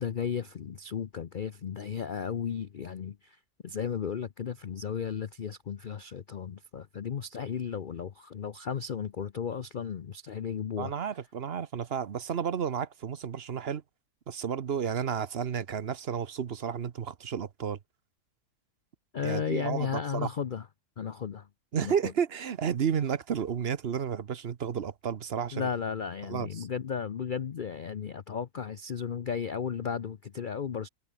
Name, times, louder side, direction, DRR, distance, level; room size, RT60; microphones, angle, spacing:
voice 1, 0.0-3.4 3.6-10.9 19.1-20.7 21.0-21.5 21.8-22.0 25.5-30.9, left 7 dB, 75° left, 0.4 m, -34 dB
voice 2, 10.8-13.8 14.3-17.8 19.2-20.3 21.7-25.7 26.3-26.7, right 7 dB, 45° right, 0.9 m, -32 dB
omnidirectional pair, 1.8 m